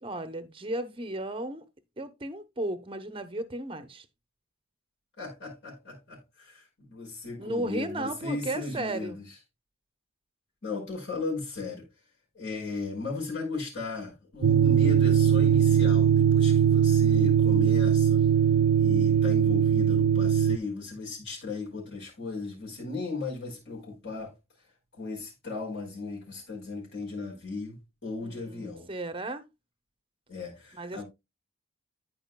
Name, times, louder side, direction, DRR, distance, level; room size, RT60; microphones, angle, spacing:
voice 1, 0.0-1.6 2.0-4.1 7.4-9.2 28.2-29.4 30.8-31.0, right 1 dB, 25° right, 0.8 m, -34 dB
voice 2, 5.2-9.2 10.6-11.9 12.3-18.2 18.8-24.3 24.9-28.9 30.3-31.1, left 3 dB, 55° left, 5.1 m, -36 dB
sound 1, 14.4-20.6, right 9 dB, 85° right, 0.4 m, -21 dB
14.5 x 4.9 x 2.2 m
head